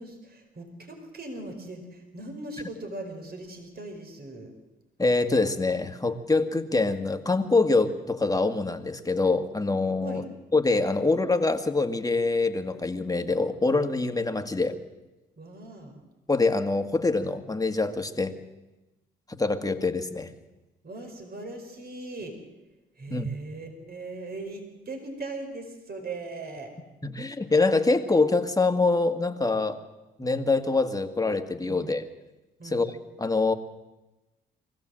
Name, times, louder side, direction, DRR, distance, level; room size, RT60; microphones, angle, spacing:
voice 1, 0.0-4.5 10.0-10.2 15.4-16.0 20.8-22.3 23.0-26.7 31.7-31.9 32.6-32.9, right 2 dB, 50° right, 4 dB, 4.9 m, -39 dB
voice 2, 5.0-10.2 10.5-14.8 16.3-18.3 19.3-20.3 23.1-23.3 27.0-29.8 30.2-32.1 32.6-32.9 33.2-33.5, left 3 dB, 15° left, 6 dB, 2.1 m, -25 dB
23.5 x 15.5 x 7.8 m, 1.0 s
supercardioid pair, 55°, 21 cm